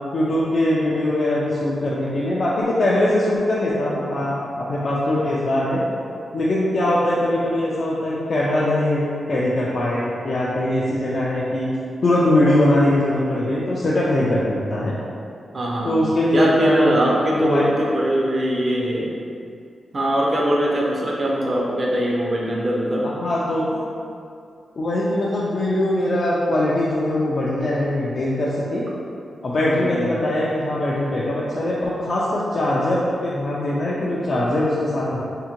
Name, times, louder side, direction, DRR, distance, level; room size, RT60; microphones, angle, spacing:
voice 1, 0.1-5.8 6.3-11.7 12.0-14.9 15.8-17.0 17.3-17.7 21.4-21.5 23.0-23.8 24.8-28.8 29.4-35.2, left 1 dB, 45° left, -7 dB, 0.3 m, -21 dB
voice 2, 15.5-16.0 16.3-19.1 19.9-23.1 29.7-30.2, equal, 30° right, -3 dB, 0.4 m, -21 dB
3.6 x 2.1 x 2.9 m, 2.5 s
wide cardioid pair, 165°, 0 cm